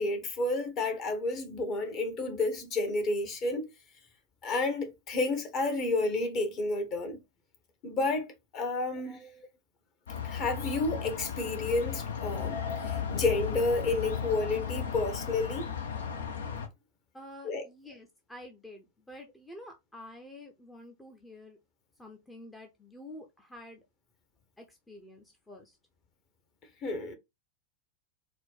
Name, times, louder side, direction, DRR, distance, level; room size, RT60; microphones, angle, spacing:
voice 1, 0.0-3.7 4.4-7.2 7.8-9.2 10.2-15.7 17.4-17.6 26.8-27.2, left 2 dB, 35° left, 1.2 m, -31 dB
voice 2, 8.9-9.5 17.1-21.6 22.0-23.8 24.6-25.8, left 1 dB, 10° left, 0.7 m, -49 dB
sound 1, 10.1-16.7, left 7 dB, 65° left, 0.7 m, -35 dB
4.3 x 2.2 x 4.1 m
figure-of-eight pair, 90°, 0 cm